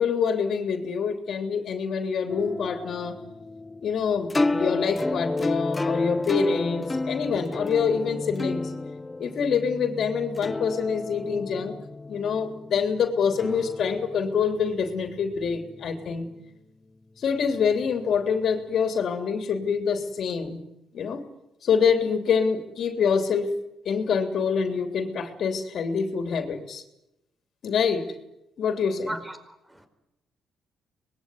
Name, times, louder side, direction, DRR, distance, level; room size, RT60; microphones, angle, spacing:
voice 1, 0.0-3.2 3.8-8.7 9.2-11.7 12.1-16.3 17.2-20.6 20.9-21.2 21.6-23.5 23.8-26.8 27.6-28.1 28.6-29.2, left 6 dB, 65° left, 3.4 m, -26 dB
sound 1, 2.3-16.3, left 2 dB, 20° left, 1.1 m, -31 dB
voice 2, 29.1-29.9, right 1 dB, 10° right, 4.9 m, -37 dB
25.5 x 21.0 x 9.5 m
cardioid pair, 90°, 0 cm